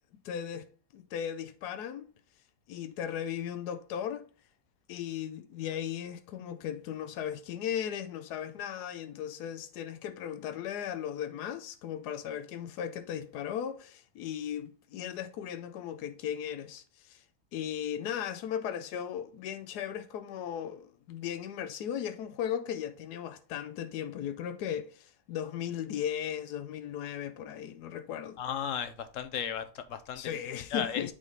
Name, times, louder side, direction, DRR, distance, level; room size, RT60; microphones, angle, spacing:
voice 1, 0.2-2.1 2.7-4.3 4.9-17.2 17.5-28.4 30.2-31.1, left 9 dB, 90° left, 1.2 m, -37 dB
voice 2, 28.4-30.4 30.7-31.1, left 8 dB, 60° left, 1.0 m, -35 dB
8.3 x 3.7 x 3.9 m
omnidirectional pair, 1.6 m